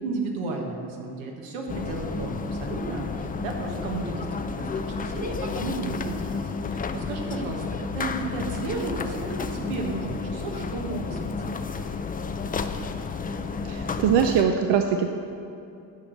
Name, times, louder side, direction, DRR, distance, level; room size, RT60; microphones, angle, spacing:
voice 1, 0.0-4.7 5.0-6.3 6.6-11.2 11.4-11.5, right 3 dB, 90° right, 0 dB, 1.5 m, -33 dB
sound 1, 1.7-14.4, left 4 dB, 20° left, 0.4 m, -31 dB
voice 2, 13.6-15.1, right 7 dB, 65° right, 5 dB, 0.7 m, -22 dB
10.5 x 4.9 x 6.4 m, 2.7 s
cardioid pair, 90°, 45 cm